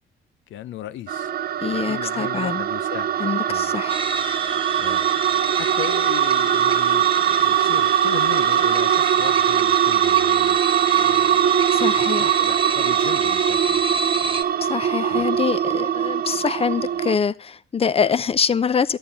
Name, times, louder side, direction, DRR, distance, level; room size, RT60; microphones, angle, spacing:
voice 1, 0.5-1.3 1.7-3.2 3.5-3.7 4.8-5.1 5.6-10.6 11.0-11.4 12.2-13.9 14.2-14.4 15.1-15.4, left 11 dB, 75° left, 0.6 m, -36 dB
sound 1, 1.1-17.2, right 9 dB, 50° right, 0.5 m, -21 dB
voice 2, 1.6-2.7 3.2-4.0 11.7-12.4 14.6-19.0, left 6 dB, 30° left, 0.7 m, -24 dB
sound 2, 3.9-14.4, right 4 dB, 25° right, 0.8 m, -28 dB
11.0 x 8.8 x 5.5 m
cardioid pair, 90°, 20 cm